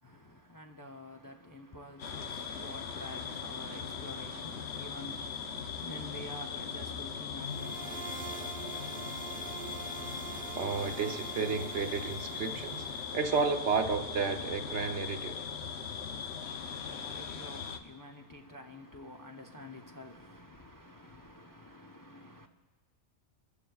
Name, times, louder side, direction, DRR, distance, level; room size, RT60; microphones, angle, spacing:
voice 1, 0.0-9.8 16.0-22.5, left 1 dB, 25° left, 0.5 m, -49 dB
sound 1, 2.0-17.8, left 6 dB, 75° left, 1.1 m, -39 dB
sound 2, 7.4-13.2, right 8 dB, 60° right, 0.7 m, -45 dB
voice 2, 10.5-15.5, right 5 dB, 85° right, 1.2 m, -32 dB
24.5 x 14.5 x 2.4 m
omnidirectional pair, 1.1 m